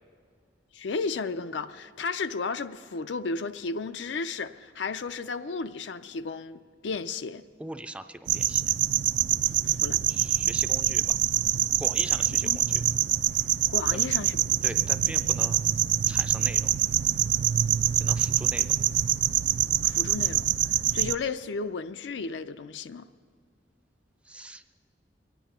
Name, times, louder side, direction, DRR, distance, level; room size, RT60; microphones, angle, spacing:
voice 1, 0.7-7.4 9.6-10.0 12.3-12.6 13.7-14.8 19.8-20.5 20.9-23.1, left 4 dB, 80° left, 0.5 m, -34 dB
voice 2, 7.6-8.7 10.1-11.2 11.8-12.8 13.9-14.0 14.6-15.7 16.1-16.7 18.0-18.7 24.2-24.6, right 1 dB, 5° right, 0.4 m, -40 dB
sound 1, 8.3-21.2, right 12 dB, 75° right, 0.4 m, -25 dB
22.5 x 9.2 x 5.7 m
head